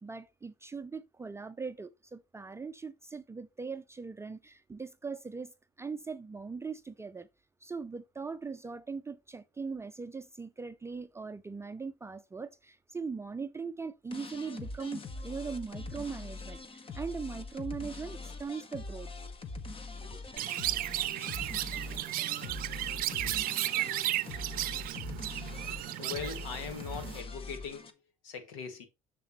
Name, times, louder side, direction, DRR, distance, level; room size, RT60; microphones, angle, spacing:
voice 1, 0.0-5.5 5.8-7.3 7.6-19.1 20.1-20.2, right 5 dB, 15° right, 0.5 m, -40 dB
Breather Loop, 14.1-27.9, left 3 dB, 30° left, 1.2 m, -43 dB
Chirp tweet, 20.4-27.2, right 15 dB, 55° right, 0.6 m, -34 dB
voice 2, 26.0-27.9 28.2-28.9, left 6 dB, 80° left, 1.8 m, -40 dB
6.9 x 6.8 x 3.1 m
hypercardioid pair, 75°, 17 cm